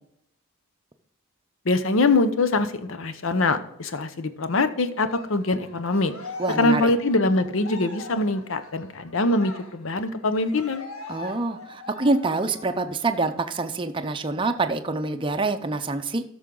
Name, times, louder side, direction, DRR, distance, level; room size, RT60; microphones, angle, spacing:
voice 1, 1.7-6.1 6.6-10.8, left 2 dB, 65° left, 11 dB, 0.8 m, -23 dB
Cheering, 5.0-13.0 13.3-13.5 13.9-14.9, left 4 dB, 85° left, 1.5 m, -41 dB
voice 2, 6.4-6.9 11.1-16.2, right 3 dB, 25° right, 6 dB, 0.6 m, -26 dB
13.0 x 6.3 x 3.8 m, 0.77 s
head